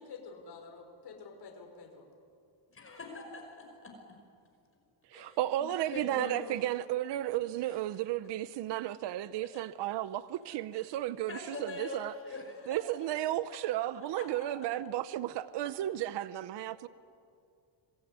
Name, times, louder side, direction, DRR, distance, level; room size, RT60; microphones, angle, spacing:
voice 1, 0.0-2.1, left 4 dB, 50° left, 5.3 m, -48 dB
voice 2, 2.7-4.2 5.1-6.7 7.6-7.8 9.5-9.6 10.7-10.9 11.3-12.8 14.1-14.3, left 2 dB, 25° left, 5.6 m, -44 dB
voice 3, 5.1-12.1 12.7-16.9, right 13 dB, 60° right, 0.9 m, -33 dB
26.0 x 21.0 x 9.5 m
cardioid pair, 150°, 49 cm